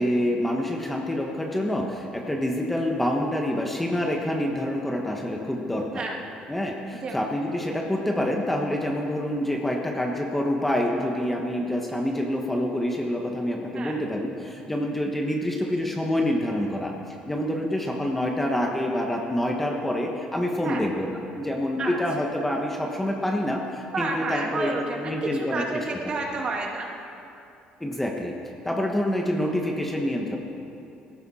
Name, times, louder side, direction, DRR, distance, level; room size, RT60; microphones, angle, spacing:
voice 1, 0.0-6.0 6.5-25.8 27.8-28.3 28.6-30.4, left 1 dB, 5° left, 0 dB, 1.2 m, -27 dB
voice 2, 23.9-26.9, right 3 dB, 35° right, 0 dB, 2.0 m, -30 dB
17.5 x 15.0 x 4.3 m, 2.7 s
cardioid pair, 145°, 3 cm